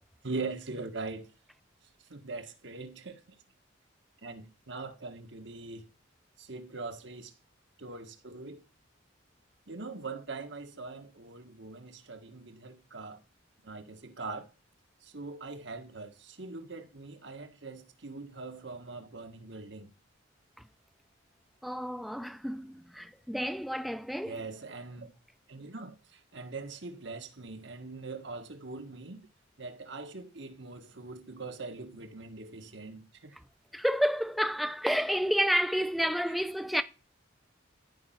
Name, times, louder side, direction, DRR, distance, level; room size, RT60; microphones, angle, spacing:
voice 1, 0.2-1.3 2.1-3.4 4.2-5.9 6.4-7.3 7.8-8.6 9.7-13.2 13.6-14.5 15.0-19.9 24.2-25.1 25.5-29.3 29.6-33.4, right 3 dB, 60° right, 1.7 m, -42 dB
voice 2, 21.6-24.3 33.7-36.8, equal, ahead, 0.6 m, -30 dB
14.5 x 5.5 x 9.3 m
head